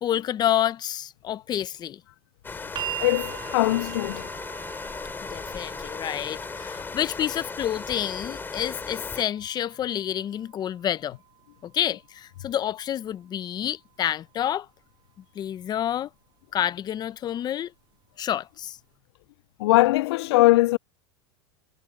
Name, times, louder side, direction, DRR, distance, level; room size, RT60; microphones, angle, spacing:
voice 1, 0.0-2.0 5.3-11.2 11.6-14.7 15.3-16.1 16.5-17.7 18.2-18.8, left 11 dB, 30° left, 0.8 m, -28 dB
sound 1, 2.4-9.2, left 4 dB, 15° left, 3.2 m, -36 dB
sound 2, 2.8-14.8 15.9-16.0, right 15 dB, 35° right, 3.3 m, -43 dB
voice 2, 3.0-4.3 19.6-20.8, left 19 dB, 70° left, 0.5 m, -21 dB
supercardioid pair, 115°, 14 cm